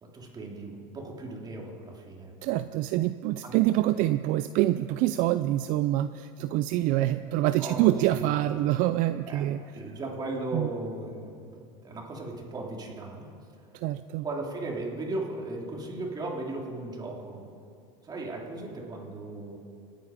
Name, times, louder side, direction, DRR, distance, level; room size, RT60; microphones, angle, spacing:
voice 1, 0.0-2.3 3.4-3.6 7.6-8.4 9.3-9.4 9.7-13.3 14.2-17.4 18.0-19.6, right 2 dB, 25° right, -1 dB, 3.2 m, -36 dB
voice 2, 2.4-9.6 10.5-10.7 13.7-14.2, right 15 dB, 55° right, 12 dB, 0.4 m, -26 dB
26.0 x 9.2 x 5.0 m, 2.5 s
supercardioid pair, 115°, 16 cm